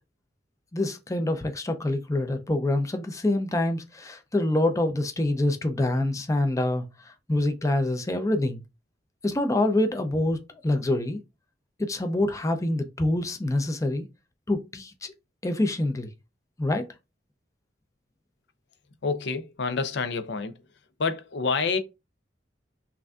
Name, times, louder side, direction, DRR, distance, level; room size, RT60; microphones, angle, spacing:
voice 1, 0.7-8.6 9.2-10.4 10.6-11.2 11.8-14.1 14.5-15.1 15.4-16.1 16.6-16.9, left 1 dB, 15° left, 0.5 m, -26 dB
voice 2, 19.0-20.5 21.0-21.8, left 4 dB, 65° left, 0.6 m, -27 dB
5.8 x 2.6 x 2.3 m
head